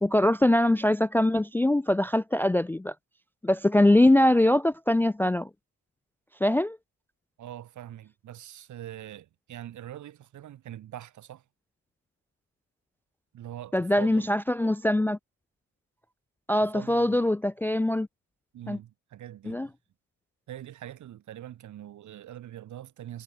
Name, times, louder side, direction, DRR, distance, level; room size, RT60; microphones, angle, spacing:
voice 1, 0.0-2.9 3.4-5.5 6.4-6.8 13.7-15.2 16.5-18.1 18.7-18.8 19.5-19.7, left 1 dB, 5° left, 0.4 m, -22 dB
voice 2, 7.4-11.4 13.3-14.3 16.6-17.2 18.5-19.7 20.5-23.2, right 12 dB, 75° right, 4.9 m, -43 dB
cardioid pair, 90°, 30 cm